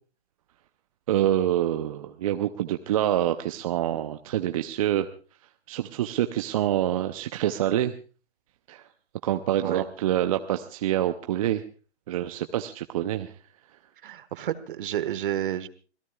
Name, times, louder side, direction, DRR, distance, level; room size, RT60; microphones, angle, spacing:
voice 1, 1.1-5.1 5.7-7.9 8.7-8.8 9.2-11.6 12.1-13.3, right 12 dB, 30° right, 8 dB, 0.7 m, -26 dB
voice 2, 14.0-15.7, right 11 dB, 45° right, 13 dB, 1.4 m, -30 dB
26.5 x 17.5 x 2.4 m, 0.37 s
figure-of-eight pair, 135°, 35 cm